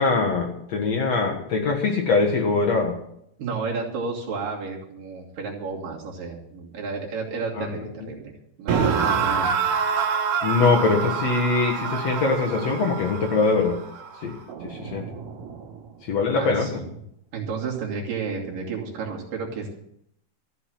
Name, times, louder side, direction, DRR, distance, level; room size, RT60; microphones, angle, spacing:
voice 1, 0.0-3.0 7.6-7.8 10.4-13.8 14.2-14.4 14.6-15.1 16.1-16.7, left 4 dB, 55° left, 0 dB, 2.3 m, -22 dB
voice 2, 3.4-8.3 8.6-9.5 16.4-16.9 17.3-19.7, right 4 dB, 65° right, -2 dB, 4.2 m, -32 dB
sound 1, 8.7-15.8, right 6 dB, 85° right, 3.6 m, -27 dB
14.5 x 7.8 x 7.8 m, 0.74 s
omnidirectional pair, 4.3 m